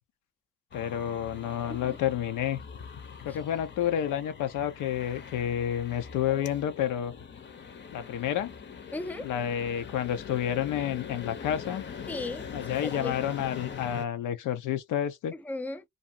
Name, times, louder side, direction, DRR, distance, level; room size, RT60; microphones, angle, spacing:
voice 1, 0.7-2.6 3.2-7.1 7.9-8.5 9.2-11.8 12.5-15.3, left 10 dB, 85° left, 0.7 m, -30 dB
sound 1, 0.7-14.1, left 6 dB, 40° left, 0.7 m, -42 dB
voice 2, 8.9-9.3 12.1-13.1 15.4-15.8, left 2 dB, 5° left, 0.4 m, -36 dB
2.5 x 2.4 x 2.6 m
cardioid pair, 90°, 30 cm